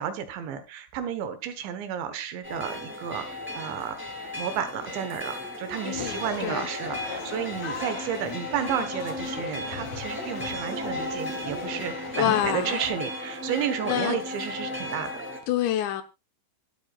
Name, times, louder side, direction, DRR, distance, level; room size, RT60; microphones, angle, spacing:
voice 1, 0.0-4.0 4.4-15.2, right 8 dB, 70° right, 3.3 m, -32 dB
sound 1, 2.4-15.4, left 1 dB, 5° right, 2.7 m, -35 dB
voice 2, 5.8-6.7 12.2-12.9 13.8-14.2 15.5-16.0, left 12 dB, 75° left, 2.8 m, -27 dB
sound 2, 5.9-12.7, left 5 dB, 40° left, 3.2 m, -39 dB
24.5 x 8.2 x 2.4 m
omnidirectional pair, 5.8 m